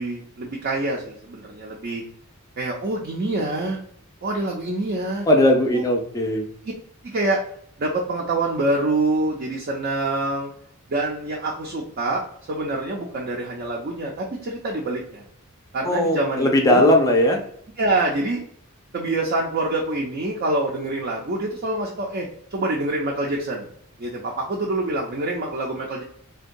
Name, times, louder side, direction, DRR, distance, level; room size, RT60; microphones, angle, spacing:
voice 1, 0.0-2.0 2.6-3.8 4.2-5.3 5.7-5.8 7.0-7.4 7.8-10.5 10.9-12.2 12.5-15.2 15.7-16.9 17.8-18.4 18.9-23.7 24.0-26.0, right 2 dB, 50° right, -2 dB, 0.5 m, -26 dB
voice 2, 5.3-6.5 15.8-17.4, left 1 dB, 15° left, 2 dB, 0.4 m, -18 dB
3.6 x 2.2 x 2.5 m, 0.66 s
head